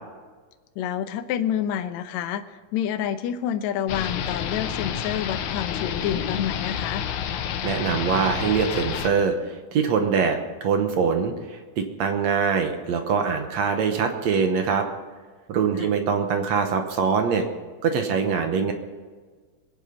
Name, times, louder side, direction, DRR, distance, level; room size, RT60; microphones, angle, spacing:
voice 1, 0.8-2.4 2.7-7.0 15.7-15.9, left 10 dB, 85° left, 8 dB, 1.6 m, -28 dB
sound 1, 3.9-9.1, left 9 dB, 70° left, 1.8 m, -29 dB
voice 2, 7.6-14.9 15.5-17.4 17.8-18.7, right 6 dB, 65° right, 5 dB, 1.7 m, -23 dB
22.0 x 9.1 x 5.2 m, 1.4 s
omnidirectional pair, 4.4 m